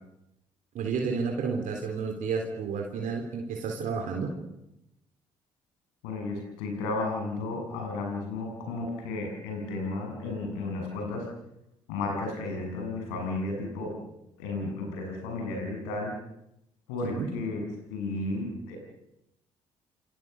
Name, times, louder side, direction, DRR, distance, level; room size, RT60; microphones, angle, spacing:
voice 1, 0.7-4.3 17.0-17.3, right 5 dB, 60° right, 2 dB, 3.8 m, -31 dB
voice 2, 6.0-11.3 11.9-13.9 14.4-16.1 16.9-17.6 17.9-18.8, left 2 dB, 75° left, 2 dB, 7.5 m, -33 dB
28.0 x 24.0 x 7.1 m, 0.87 s
hypercardioid pair, 50°, 15 cm